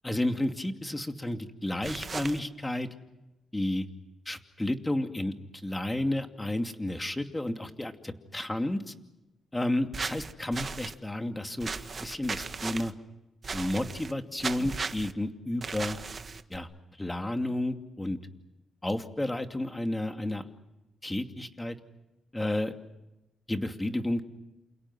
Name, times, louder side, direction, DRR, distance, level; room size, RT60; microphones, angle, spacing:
voice 1, 0.0-2.9 3.5-3.9 4.3-5.3 5.6-8.9 9.5-11.7 12.0-12.9 13.5-16.0 16.5-16.7 17.0-18.2 18.8-20.5 21.0-21.8 22.3-22.7 23.5-24.2, left 1 dB, 15° left, 6 dB, 2.6 m, -31 dB
sound 1, 1.8-2.4 9.9-10.9 11.6-12.9 13.4-14.1 14.4-15.1 15.6-16.6, right 4 dB, 40° right, 1.5 m, -36 dB
29.0 x 28.5 x 6.1 m, 0.98 s
cardioid pair, 100°, 0 cm